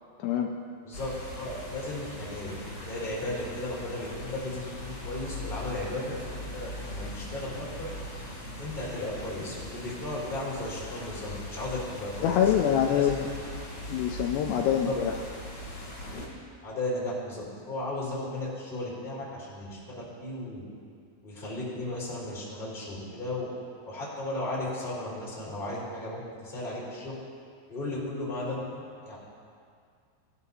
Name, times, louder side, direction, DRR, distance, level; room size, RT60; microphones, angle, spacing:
voice 1, 0.2-0.5 12.2-13.2 13.9-15.1, left 9 dB, 80° left, 2 dB, 2.6 m, -25 dB
voice 2, 0.8-2.5 2.8-7.9 8.6-12.4 12.7-13.2 14.7-14.9 16.6-20.6 21.2-23.5 23.9-27.1 27.7-29.2, left 1 dB, 15° left, -8 dB, 3.1 m, -35 dB
sound 1, 0.9-16.3, left 1 dB, 35° left, 3.4 m, -40 dB
18.5 x 11.0 x 2.8 m, 2.2 s
omnidirectional pair, 5.0 m